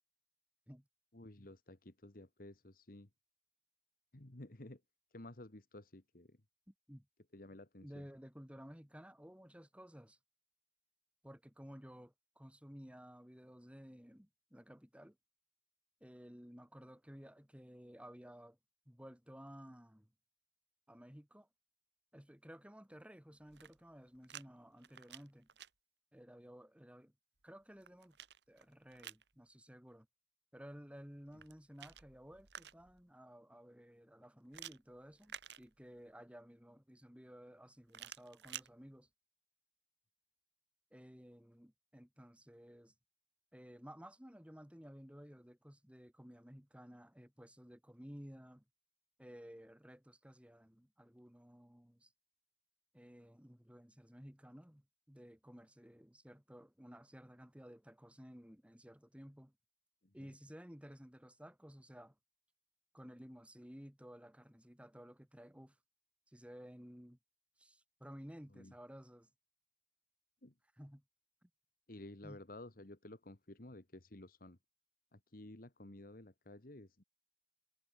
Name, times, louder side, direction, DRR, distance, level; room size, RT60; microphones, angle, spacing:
voice 1, 1.1-3.1 4.1-4.8 5.1-6.4 7.3-8.1 60.0-60.3 68.5-68.7 70.4-70.5 71.9-74.6 75.1-77.0, left 1 dB, 55° left, 1.8 m, -53 dB
voice 2, 6.7-7.1 7.8-10.2 11.2-15.2 16.0-18.6 18.9-20.1 20.9-21.5 22.1-25.5 26.1-27.1 27.4-28.2 28.5-30.1 30.5-39.1 40.9-42.9 43.5-48.6 49.2-52.1 52.9-59.5 60.1-62.2 62.9-65.8 66.3-67.2 67.6-69.3 70.8-71.0 71.4-71.5 72.2-72.4, equal, 5° right, 2.3 m, -55 dB
sound 1, 23.4-24.5 24.8-25.7 27.4-29.3 31.3-33.0 34.5-36.1 37.9-38.7, right 9 dB, 75° right, 1.6 m, -53 dB
head